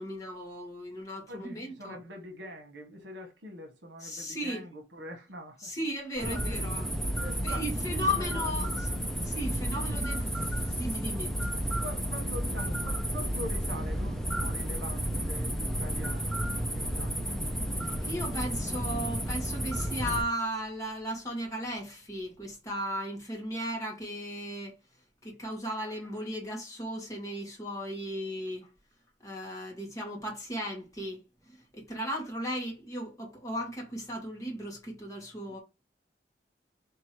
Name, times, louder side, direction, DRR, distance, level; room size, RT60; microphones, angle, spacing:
voice 1, 0.0-2.0 4.0-4.6 5.6-6.9 7.4-8.7 9.2-10.2 10.8-11.3 17.8-24.7 25.2-28.7 29.2-31.2 31.5-35.6, equal, 20° left, 1.6 m, -36 dB
voice 2, 1.3-5.7 6.2-6.6 7.2-8.8 9.6-10.1 11.4-16.4 16.7-17.4, equal, 80° right, 1.2 m, -44 dB
sound 1, 6.2-20.2, equal, ahead, 0.6 m, -32 dB
sound 2, 8.6-22.8, equal, 60° left, 0.7 m, -46 dB
3.4 x 3.0 x 4.6 m
head